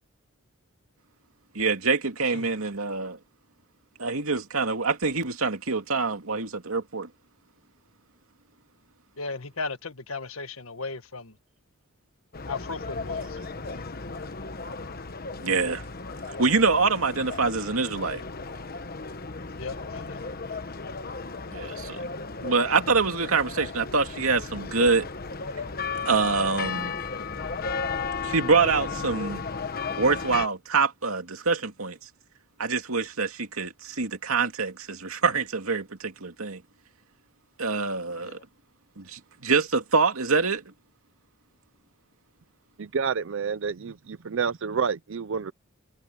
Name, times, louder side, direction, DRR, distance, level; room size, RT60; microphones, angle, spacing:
voice 1, 1.5-3.2 4.0-7.1 15.4-15.8 16.4-18.2 21.5-22.0 22.4-25.1 26.0-27.0 28.2-29.4 30.0-32.0 32.6-36.6 37.6-38.4 39.0-40.6, right 4 dB, 85° right, 2.5 m, -25 dB
voice 2, 9.2-11.3 12.5-13.3 19.6-20.2 38.2-38.4, left 3 dB, 80° left, 1.7 m, -36 dB
sound 1, 12.3-30.5, left 4 dB, 45° left, 1.2 m, -35 dB
voice 3, 42.8-45.5, right 6 dB, 60° right, 0.5 m, -29 dB
head